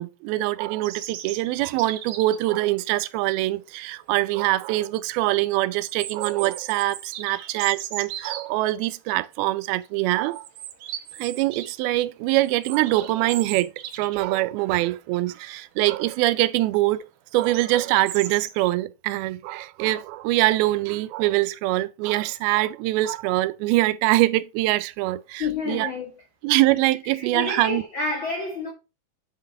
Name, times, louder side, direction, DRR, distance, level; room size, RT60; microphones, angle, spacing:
voice 1, 0.0-10.4 11.2-13.7 14.0-17.0 17.3-25.9 26.4-27.8, right 17 dB, 85° right, 2.5 m, -23 dB
sound 1, 0.8-2.5 4.1-4.2 4.6-4.7 5.8-8.5 9.2-9.4 9.7-9.9 10.3-11.7 12.0-14.3 14.6-14.7 15.1-15.6 16.1-16.5 17.3-18.7, right 11 dB, 70° right, 2.2 m, -37 dB
voice 2, 25.4-26.2 27.1-28.7, left 3 dB, 85° left, 1.0 m, -30 dB
8.6 x 3.9 x 4.4 m
omnidirectional pair, 4.3 m